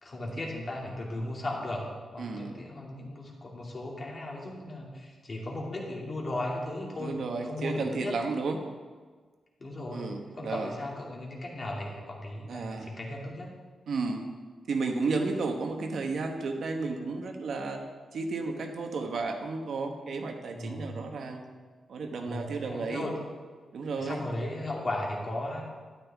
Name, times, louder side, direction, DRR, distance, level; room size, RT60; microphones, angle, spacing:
voice 1, 0.0-1.8 2.1-8.2 9.6-13.5 20.5-21.0 22.2-23.1 24.0-25.6, left 1 dB, 35° left, -2 dB, 2.5 m, -36 dB
voice 2, 2.2-2.6 7.0-8.6 9.9-10.7 12.5-12.9 13.9-14.3 14.7-17.8 18.1-21.4 21.9-23.1 23.7-24.2, right 3 dB, 65° right, 4 dB, 1.2 m, -32 dB
13.0 x 11.5 x 3.6 m, 1.5 s
wide cardioid pair, 140°, 0 cm